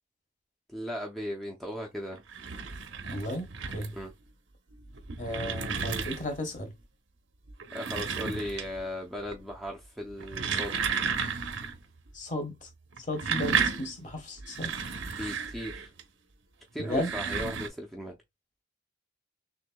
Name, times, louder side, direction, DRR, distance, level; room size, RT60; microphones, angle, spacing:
voice 1, 0.7-2.2 3.9-4.1 7.7-11.0 15.2-15.9 16.7-18.2, equal, ahead, 0.5 m, -37 dB
rolling-office-chair, 2.1-4.1 4.8-6.5 7.5-8.9 9.2-9.7 10.1-11.8 12.1-12.2 12.9-16.0 16.8-17.7, right 6 dB, 75° right, 0.7 m, -33 dB
voice 2, 3.1-3.5 3.7-3.9 5.2-6.7 12.1-12.7 13.1-14.7 16.8-17.1, left 1 dB, 40° left, 1.2 m, -34 dB
6.3 x 2.6 x 2.2 m
head